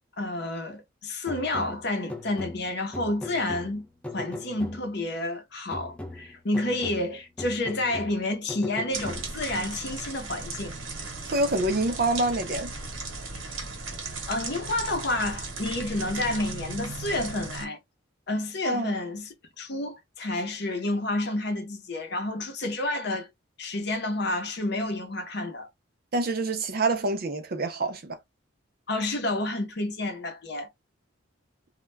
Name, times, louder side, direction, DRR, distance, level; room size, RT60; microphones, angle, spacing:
voice 1, 0.2-3.9 4.1-10.7 14.3-17.8 18.3-19.3 19.6-23.3 23.6-25.7 28.9-30.7, left 2 dB, 55° left, 0.7 m, -30 dB
sound 1, 1.3-5.1 5.7-9.6, left 1 dB, 5° left, 0.4 m, -40 dB
sound 2, 8.9-17.6, right 3 dB, 80° right, 1.0 m, -36 dB
voice 2, 11.3-12.7 18.6-18.9 26.1-28.2, right 2 dB, 50° right, 0.5 m, -26 dB
2.2 x 2.1 x 3.2 m
head